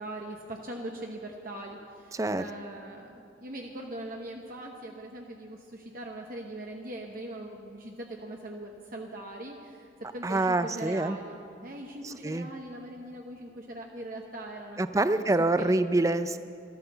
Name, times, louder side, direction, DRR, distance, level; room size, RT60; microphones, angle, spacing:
voice 1, 0.0-9.9 10.1-11.4 11.6-15.2 15.6-15.7, right 1 dB, 45° right, 1 dB, 1.0 m, -41 dB
voice 2, 2.1-2.5 10.2-11.2 12.0-12.5 14.8-16.4, right 2 dB, 15° right, 12 dB, 0.4 m, -26 dB
13.5 x 13.0 x 6.8 m, 2.6 s
head